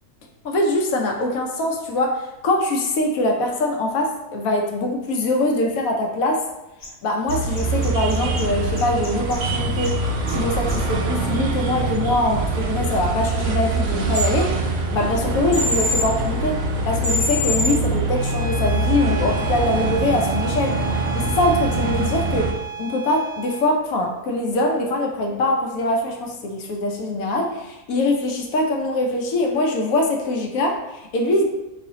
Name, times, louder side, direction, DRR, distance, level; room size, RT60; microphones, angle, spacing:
voice 1, 0.4-6.4 7.0-9.9 10.3-14.5 14.9-16.5 16.9-22.5 22.8-31.5, left 1 dB, 70° left, 1 dB, 1.0 m, -23 dB
sound 1, 6.8-6.9 7.3-8.4 8.8-9.4 9.8-9.9 10.3-10.4 10.7-10.8 14.1-14.3 15.5-16.1 17.0-17.7, left 2 dB, 40° left, 0.8 m, -24 dB
sound 2, 7.3-22.5, right 2 dB, 65° right, 0.6 m, -24 dB
Bowed string instrument, 18.1-23.7, right 6 dB, 85° left, 1.3 m, -33 dB
3.3 x 2.7 x 3.8 m, 0.97 s
omnidirectional pair, 1.6 m